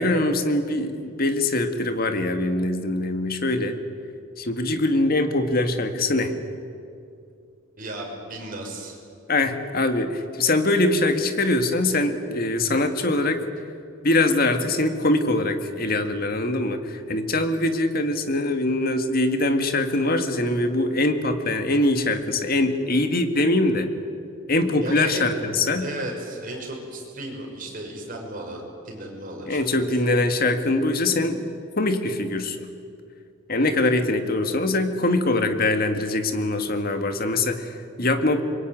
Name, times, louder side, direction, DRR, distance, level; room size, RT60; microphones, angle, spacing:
voice 1, 0.0-3.8 4.4-6.3 9.3-13.4 14.0-23.9 24.5-25.9 29.5-31.5 31.8-32.7 33.5-38.4, left 2 dB, 45° left, 7 dB, 1.9 m, -23 dB
voice 2, 7.8-9.0 24.8-25.4 25.8-29.6, right 1 dB, 40° right, 0 dB, 6.0 m, -34 dB
25.5 x 22.5 x 9.1 m, 2.4 s
head